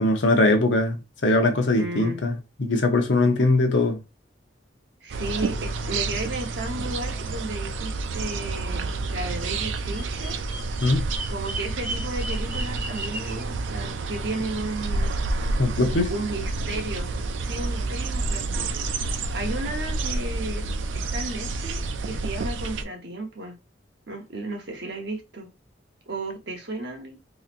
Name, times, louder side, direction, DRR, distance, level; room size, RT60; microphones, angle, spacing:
voice 1, 0.0-4.0 10.8-11.0 15.6-16.1, left 2 dB, 80° left, 0.8 m, -21 dB
voice 2, 1.8-2.2 5.0-10.4 11.3-15.1 16.1-17.1 17.4-18.8 19.3-20.7 20.9-23.6 24.1-25.5 26.1-27.2, right 2 dB, 65° right, 1.0 m, -34 dB
sound 1, 5.1-22.8, right 3 dB, 85° right, 0.4 m, -29 dB
Bird vocalization bird call bird song, 9.7-13.4, right 1 dB, 10° right, 0.8 m, -36 dB
4.0 x 2.9 x 2.5 m
head